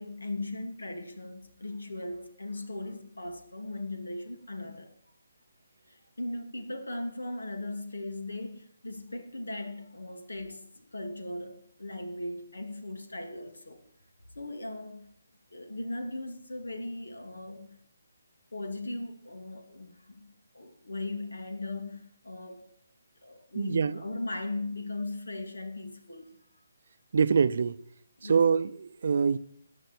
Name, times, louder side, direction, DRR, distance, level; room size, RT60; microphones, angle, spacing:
voice 1, 0.0-4.9 5.9-13.8 14.3-15.1 15.5-17.8 18.5-22.7 23.2-26.4 28.2-28.5, left 2 dB, 85° left, 2.6 m, -38 dB
voice 2, 23.5-24.0 27.1-27.8 28.2-29.4, right 6 dB, 60° right, 0.6 m, -25 dB
14.5 x 10.0 x 4.6 m
figure-of-eight pair, 150°, 0 cm